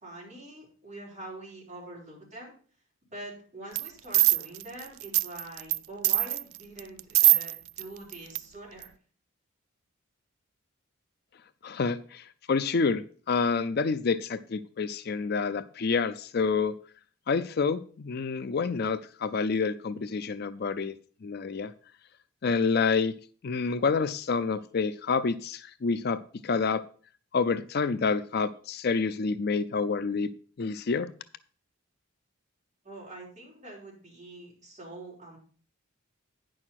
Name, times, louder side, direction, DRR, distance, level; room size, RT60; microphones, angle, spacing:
voice 1, 0.0-2.5 3.1-8.9 32.8-35.4, right 1 dB, 35° right, -4 dB, 5.0 m, -44 dB
sound 1, 3.8-5.8 6.0-7.8 8.1-8.4 8.8-8.9, right 19 dB, 75° right, 0.3 m, -23 dB
voice 2, 11.6-16.7 17.3-20.9 21.2-21.7 22.4-23.1 23.4-26.8 27.3-30.3 30.6-31.1, left 5 dB, 45° left, 13 dB, 0.4 m, -28 dB
9.8 x 6.3 x 5.8 m, 0.43 s
head